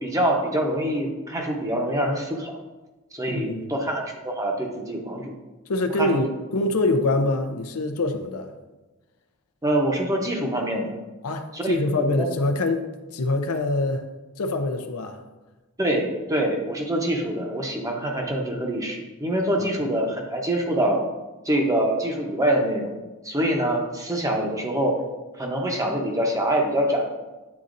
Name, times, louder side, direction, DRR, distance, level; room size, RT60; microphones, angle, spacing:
voice 1, 0.0-2.5 3.1-5.3 6.0-6.2 9.6-11.0 11.5-12.3 15.8-21.0 21.4-22.9 23.2-25.0 25.3-27.1, right 1 dB, 15° right, 1 dB, 0.8 m, -25 dB
voice 2, 3.2-3.7 5.7-8.5 11.2-12.9 13.1-14.1 14.4-15.2 19.6-19.7, left 2 dB, 85° left, 7 dB, 0.6 m, -25 dB
9.5 x 4.0 x 2.5 m, 1.2 s
head